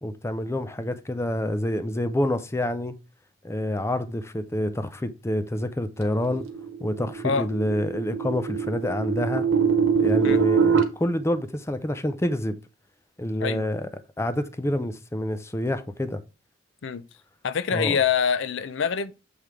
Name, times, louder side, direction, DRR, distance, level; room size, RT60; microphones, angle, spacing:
voice 1, 0.0-3.0 3.4-6.5 6.8-9.5 10.0-12.6 13.2-13.9 14.2-16.2 17.7-18.0, left 1 dB, 15° left, 0.5 m, -27 dB
sound 1, 6.1-10.8, right 6 dB, 85° right, 1.2 m, -23 dB
voice 2, 17.4-19.1, left 6 dB, 65° left, 0.5 m, -25 dB
7.6 x 3.4 x 4.6 m
head